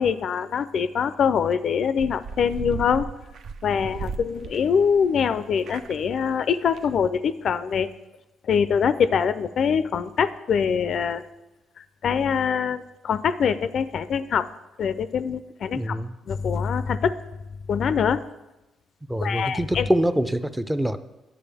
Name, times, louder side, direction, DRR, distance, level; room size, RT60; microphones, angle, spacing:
voice 1, 0.0-3.1 3.6-7.9 8.5-11.2 11.8-14.5 14.8-16.0 16.3-17.1 17.7-18.2 19.2-19.9, left 7 dB, 60° left, 14 dB, 0.3 m, -24 dB
sound 1, 2.0-5.3 5.6-6.1 6.4-6.5 6.7-6.8, right 6 dB, 65° right, 0.4 m, -36 dB
voice 2, 15.7-16.1 19.1-21.0, right 1 dB, 5° right, 12 dB, 0.4 m, -24 dB
9.8 x 7.5 x 3.4 m, 1.0 s
cardioid pair, 90°, 0 cm